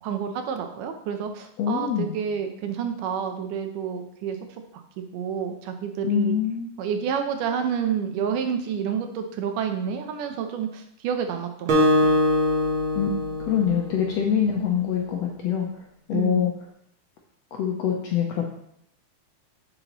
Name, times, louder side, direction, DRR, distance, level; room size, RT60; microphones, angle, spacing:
voice 1, 0.0-4.4 5.0-6.4 6.8-12.2 16.1-16.5, right 7 dB, 80° right, 6 dB, 2.3 m, -29 dB
voice 2, 1.6-2.2 6.0-6.7 12.9-13.1 13.4-15.7 16.1-16.5 17.5-18.4, left 8 dB, 75° left, 0 dB, 1.5 m, -24 dB
Acoustic guitar, 11.7-14.5, left 1 dB, 65° right, 1.3 m, -23 dB
7.7 x 7.0 x 3.0 m, 0.74 s
omnidirectional pair, 3.7 m